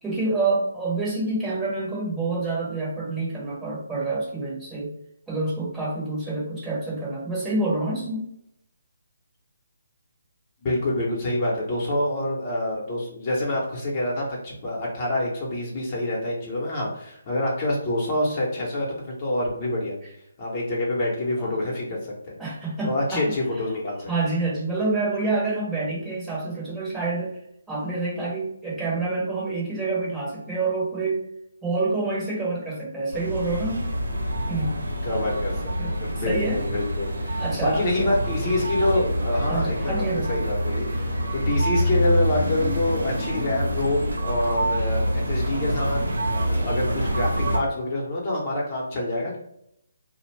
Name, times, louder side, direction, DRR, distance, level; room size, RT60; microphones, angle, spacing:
voice 1, 0.0-4.9 5.3-8.2 21.4-21.6 22.4-23.4 24.1-27.4 27.7-31.2 31.6-33.9 34.5-34.9 35.8-36.6 37.4-38.1 39.5-40.3, right 3 dB, 10° right, -6 dB, 0.9 m, -27 dB
voice 2, 10.6-20.0 20.4-22.4 22.8-24.1 35.0-35.7 36.0-46.0 46.5-49.4, left 1 dB, 30° left, -3 dB, 0.8 m, -26 dB
sound 1, 33.1-47.6, equal, 80° right, 0.7 m, -26 dB
2.4 x 2.1 x 3.2 m, 0.76 s
figure-of-eight pair, 145°, 0 cm